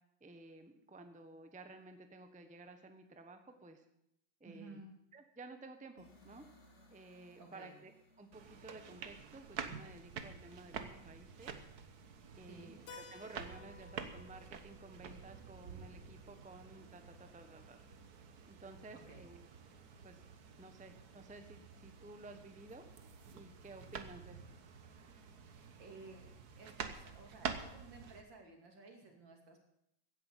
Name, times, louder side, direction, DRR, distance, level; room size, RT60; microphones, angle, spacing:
voice 1, 0.2-3.8 4.4-4.8 5.1-6.4 6.9-7.9 8.2-11.6 12.4-17.8 18.5-19.4 20.0-20.2 20.6-22.8 23.3-24.6, right 2 dB, 5° right, 7 dB, 0.9 m, -54 dB
voice 2, 4.4-4.9 7.4-7.7 12.5-12.8 18.9-19.2 25.4-26.3 26.6-29.6, right 3 dB, 70° right, 2 dB, 3.4 m, -55 dB
sound 1, 6.0-9.9, left 1 dB, 35° left, 3.0 m, -65 dB
sound 2, 8.3-28.2, right 6 dB, 55° right, 1.6 m, -49 dB
Keyboard (musical), 12.9-17.3, left 5 dB, 70° left, 2.0 m, -58 dB
16.0 x 10.0 x 7.4 m, 0.78 s
omnidirectional pair, 2.1 m